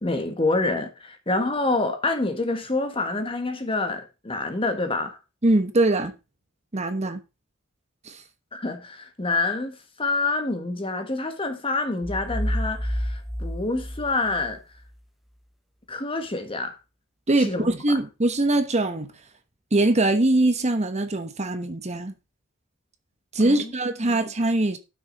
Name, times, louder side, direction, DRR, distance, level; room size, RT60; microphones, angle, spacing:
voice 1, 0.0-5.2 8.5-14.6 15.9-16.7 17.4-17.7 23.4-23.7 24.0-24.2, left 2 dB, 25° left, 1.6 m, -27 dB
voice 2, 5.4-6.1 6.7-7.2 8.0-8.2 17.3-19.1 19.7-22.1 23.3-24.8, right 2 dB, 35° right, 1.1 m, -22 dB
sound 1, 12.0-14.9, equal, ahead, 0.9 m, -29 dB
12.5 x 6.3 x 4.1 m
head